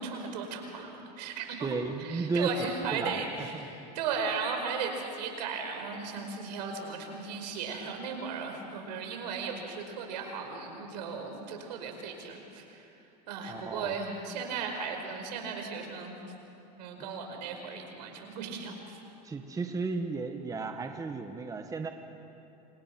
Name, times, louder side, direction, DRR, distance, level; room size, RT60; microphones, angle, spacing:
voice 1, 0.0-3.3 3.6-12.8 13.3-16.2 16.8-19.0, right 5 dB, 80° right, 4 dB, 5.2 m, -36 dB
voice 2, 1.6-2.5 3.0-3.7 13.5-14.0 19.2-21.9, right 4 dB, 15° right, 5 dB, 1.5 m, -34 dB
28.0 x 27.0 x 6.1 m, 2.9 s
supercardioid pair, 125°, 21 cm